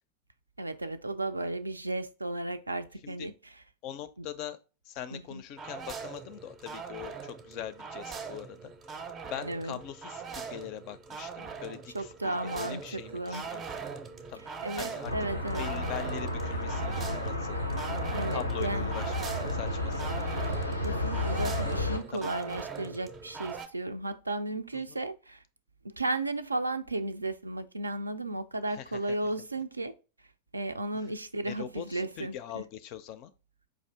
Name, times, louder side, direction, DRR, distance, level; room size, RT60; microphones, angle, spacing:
voice 1, 0.6-3.3 4.2-4.3 5.1-5.4 9.4-9.8 11.9-13.4 14.6-15.7 18.1-18.9 20.8-25.4 25.8-29.9 30.5-32.6, right 2 dB, 80° right, 0.3 m, -34 dB
voice 2, 3.8-4.6 4.8-13.9 14.3-14.5 14.8-15.1 15.6-17.6 18.3-20.3 22.1-22.3 24.7-25.0 28.7-29.0 31.5-33.3, left 11 dB, 45° left, 0.4 m, -42 dB
sound 1, 5.6-23.7, right 5 dB, 25° right, 0.5 m, -41 dB
sound 2, 15.0-22.0, left 1 dB, 85° left, 0.6 m, -32 dB
4.8 x 2.5 x 3.3 m
figure-of-eight pair, 90°, 0 cm